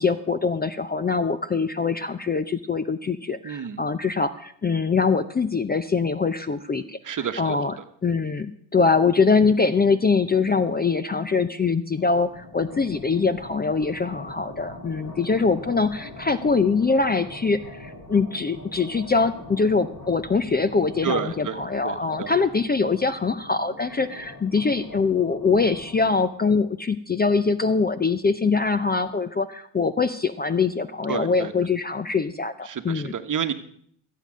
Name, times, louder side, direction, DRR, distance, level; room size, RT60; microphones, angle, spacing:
voice 1, 0.0-7.0 7.4-7.8 8.0-33.1, left 4 dB, 20° left, 13 dB, 0.6 m, -23 dB
voice 2, 3.4-3.8 7.0-7.6 15.3-15.4 21.0-22.3 31.1-31.5 32.7-33.5, right 7 dB, 40° right, 9 dB, 1.2 m, -30 dB
sound 1, 12.0-26.1, left 2 dB, 45° left, 4.9 m, -42 dB
14.0 x 8.5 x 6.2 m, 0.64 s
supercardioid pair, 80°, 49 cm